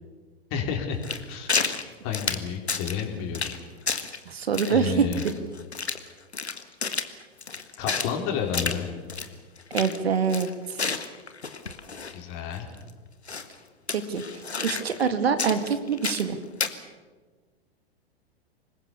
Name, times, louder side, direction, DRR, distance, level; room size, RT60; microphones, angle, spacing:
voice 1, 0.5-1.0 1.3-1.5 2.0-3.6 4.7-5.2 7.8-8.9 12.1-12.7, left 7 dB, 45° left, 3 dB, 4.5 m, -30 dB
sound 1, 1.0-1.8 2.1-3.0 3.3-3.6 3.9-4.2 4.5-6.1 6.3-8.1 8.5-8.8 9.1-9.3 9.6-10.0 10.3-12.2 12.5-12.6 13.3-13.5 13.9-15.1 15.4-16.3 16.6-16.7, left 5 dB, 85° left, 1.7 m, -31 dB
voice 2, 4.3-5.1 9.7-10.8 13.9-14.2 14.6-16.4, right 6 dB, 70° right, 10 dB, 2.3 m, -25 dB
25.5 x 21.5 x 7.1 m, 1.4 s
figure-of-eight pair, 95°, 32 cm